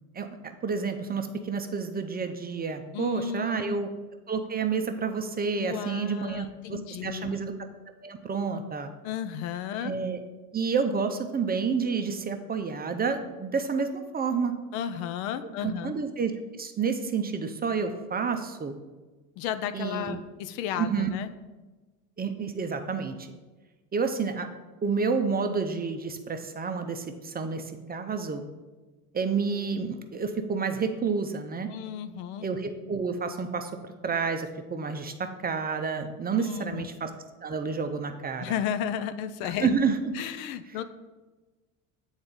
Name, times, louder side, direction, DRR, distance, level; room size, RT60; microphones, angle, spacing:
voice 1, 0.1-3.9 4.3-7.5 8.0-8.9 9.8-10.2 10.5-14.5 15.4-16.3 16.6-18.7 19.7-20.2 20.8-21.1 22.2-23.3 23.9-24.5 24.8-28.4 29.1-31.7 32.4-33.7 34.0-37.1 37.4-38.5 39.4-40.0, right 5 dB, 20° right, 6 dB, 0.5 m, -29 dB
voice 2, 2.9-3.8 5.6-7.4 9.0-9.9 14.7-15.9 19.4-21.3 31.7-32.4 36.3-36.9 38.4-39.7 40.1-40.8, left 9 dB, 70° left, 11 dB, 0.6 m, -33 dB
7.7 x 4.0 x 3.7 m, 1.2 s
hypercardioid pair, 75°, 44 cm